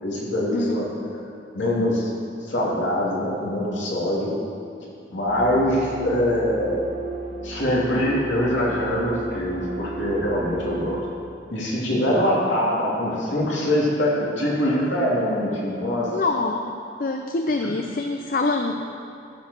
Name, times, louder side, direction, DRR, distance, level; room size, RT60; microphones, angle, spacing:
voice 1, 0.0-1.1 1.5-2.1 2.4-4.3 5.1-6.8 7.4-11.0 11.5-16.2, left 1 dB, 90° left, -6 dB, 2.8 m, -23 dB
sound 1, 5.3-11.0, right 4 dB, 40° right, 0.7 m, -34 dB
voice 2, 16.1-16.6 17.0-18.7, left 3 dB, 45° left, 4 dB, 0.5 m, -25 dB
14.0 x 4.9 x 6.5 m, 2.5 s
head